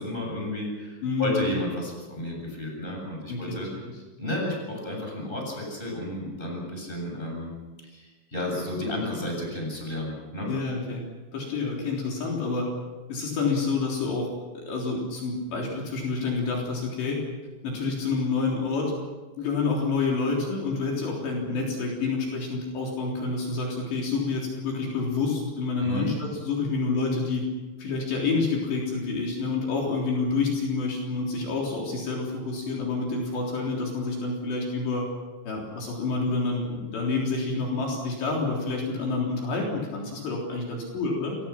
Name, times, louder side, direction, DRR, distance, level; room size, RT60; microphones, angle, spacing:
voice 1, 0.0-3.7 4.2-7.5 7.9-10.5 25.8-26.1, left 1 dB, 10° left, 0 dB, 7.5 m, -32 dB
voice 2, 1.0-1.4 3.3-3.6 10.5-12.7 13.1-14.3 14.7-17.2 17.6-18.9 19.4-27.5 27.8-35.1 35.4-41.4, left 3 dB, 65° left, -2 dB, 5.7 m, -28 dB
28.0 x 22.0 x 6.0 m, 1.3 s
omnidirectional pair, 5.7 m